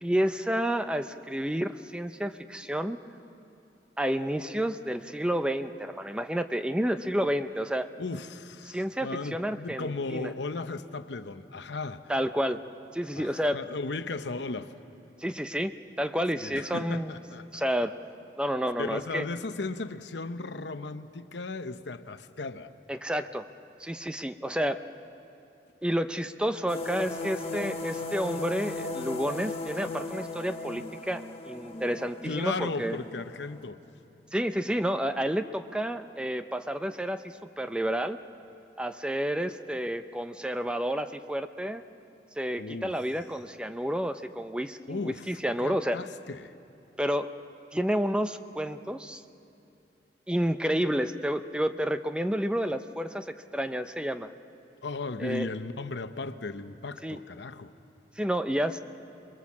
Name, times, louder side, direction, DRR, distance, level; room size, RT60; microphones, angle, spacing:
voice 1, 0.0-3.0 4.0-7.9 8.7-10.3 12.1-12.6 12.9-13.6 15.2-17.1 17.5-17.9 18.4-19.3 22.9-23.4 23.8-24.8 25.8-33.0 34.3-38.2 38.8-41.8 42.4-46.0 47.0-47.3 47.7-49.2 50.3-54.3 55.2-55.5 57.0-57.2 58.2-58.8, equal, 5° right, 9 dB, 0.5 m, -30 dB
voice 2, 8.0-12.0 13.2-14.7 16.4-17.9 18.8-22.7 32.2-33.8 42.6-42.9 44.9-46.5 54.8-57.7, left 3 dB, 80° left, 10 dB, 0.8 m, -36 dB
sound 1, 26.7-33.7, left 3 dB, 35° left, 1.2 m, -37 dB
27.5 x 21.5 x 7.3 m, 2.7 s
head